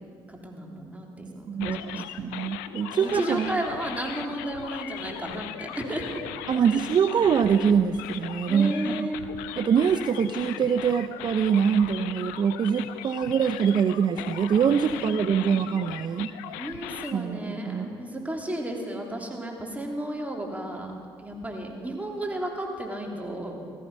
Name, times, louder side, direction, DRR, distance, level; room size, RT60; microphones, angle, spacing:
voice 1, 0.3-2.0 2.8-6.2 6.7-6.8 8.5-9.3 14.9-15.3 16.6-20.9 21.2-23.6, right 1 dB, 15° right, 0 dB, 3.1 m, -33 dB
voice 2, 1.5-3.5 6.5-9.1 9.6-16.3 17.1-17.9, right 7 dB, 45° right, 9 dB, 0.6 m, -24 dB
sound 1, 1.6-17.1, left 12 dB, 80° left, 0.5 m, -38 dB
17.0 x 14.0 x 5.5 m, 2.2 s
hypercardioid pair, 55°, 11 cm